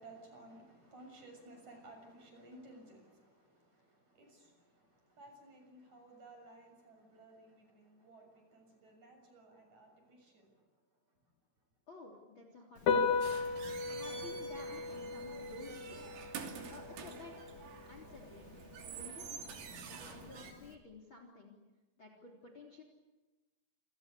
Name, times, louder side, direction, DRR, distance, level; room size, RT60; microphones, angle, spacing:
voice 1, 0.0-10.5, right 2 dB, 35° right, 3 dB, 7.8 m, -57 dB
voice 2, 11.9-13.4 13.9-16.0 16.7-17.3 17.8-18.5 18.9-19.3 19.8-21.6 22.0-22.8, left 3 dB, 25° left, 4 dB, 3.5 m, -53 dB
Piano, 12.8-20.7, left 5 dB, 50° left, 3.2 m, -38 dB
sound 1, 13.2-20.5, right 6 dB, 75° right, 5.4 m, -48 dB
30.0 x 27.0 x 7.0 m, 1.1 s
omnidirectional pair, 5.8 m